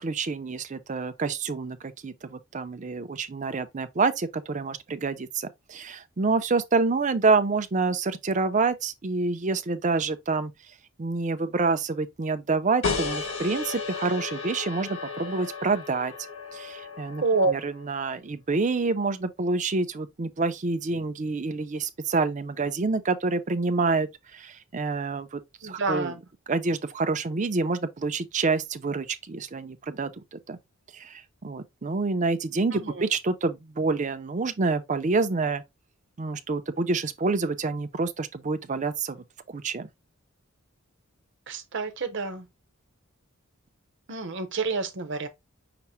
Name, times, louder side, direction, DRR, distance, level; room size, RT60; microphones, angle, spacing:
voice 1, 0.0-10.5 11.0-16.1 16.5-26.1 26.5-30.6 30.9-35.6 36.2-39.9, right 3 dB, 35° right, 0.5 m, -27 dB
sound 1, 12.8-18.0, left 4 dB, 75° left, 1.3 m, -34 dB
voice 2, 17.2-17.5 25.6-26.2 32.7-33.1 41.5-42.5 44.1-45.3, right 3 dB, 60° right, 0.9 m, -28 dB
5.9 x 2.1 x 4.2 m
head